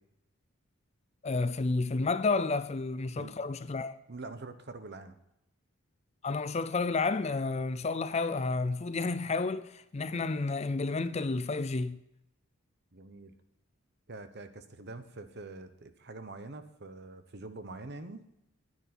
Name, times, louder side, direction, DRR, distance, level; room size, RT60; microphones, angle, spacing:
voice 1, 1.2-4.0 6.2-12.0, left 3 dB, 30° left, 0.4 m, -31 dB
voice 2, 4.1-5.2 12.9-13.3 14.1-18.2, right 2 dB, 50° right, 1.0 m, -45 dB
10.5 x 9.2 x 4.3 m
head